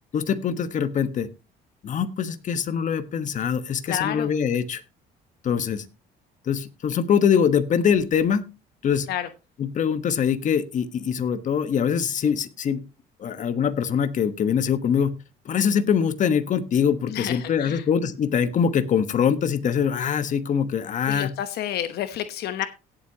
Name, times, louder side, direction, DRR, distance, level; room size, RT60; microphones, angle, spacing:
voice 1, 0.1-1.3 1.8-4.8 5.4-5.8 6.4-8.4 8.8-9.1 9.6-12.8 13.2-15.1 15.4-21.3, left 7 dB, 50° left, 11 dB, 1.3 m, -23 dB
voice 2, 3.9-4.3 9.1-9.3 17.1-17.8 21.1-22.7, left 11 dB, 70° left, 10 dB, 1.0 m, -29 dB
17.5 x 8.0 x 2.9 m, 0.28 s
cardioid pair, 110°, 17 cm